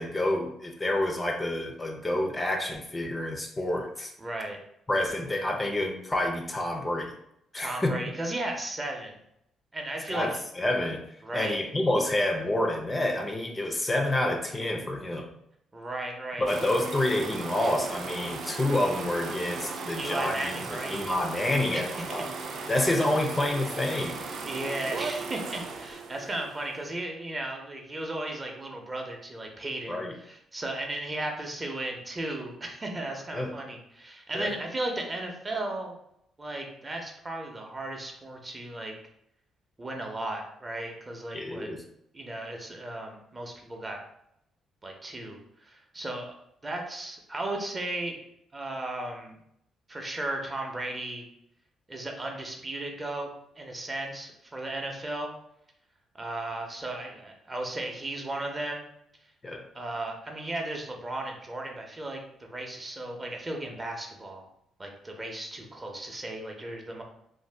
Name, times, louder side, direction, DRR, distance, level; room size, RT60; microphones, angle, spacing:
voice 1, 0.0-4.1 4.9-7.2 7.5-7.9 10.1-15.3 16.4-22.3 22.7-24.2 29.9-30.1 33.3-33.5 34.3-34.5 41.3-41.8 59.4-59.7, left 1 dB, 20° left, 2 dB, 0.4 m, -28 dB
voice 2, 4.2-4.6 7.5-9.2 9.7-10.3 11.2-11.7 15.7-16.5 20.0-21.1 21.7-21.8 22.2-22.6 24.4-36.0 36.4-38.9 39.8-41.7 42.1-44.0 44.8-46.3 46.6-48.2 48.5-49.4 49.9-51.2 51.9-55.3 56.1-58.9 59.7-64.5 64.8-67.0, right 2 dB, 25° right, 2 dB, 0.6 m, -35 dB
sound 1, 16.5-26.9, right 4 dB, 65° right, 0.4 m, -37 dB
2.5 x 2.2 x 3.3 m, 0.75 s
cardioid pair, 90°, 0 cm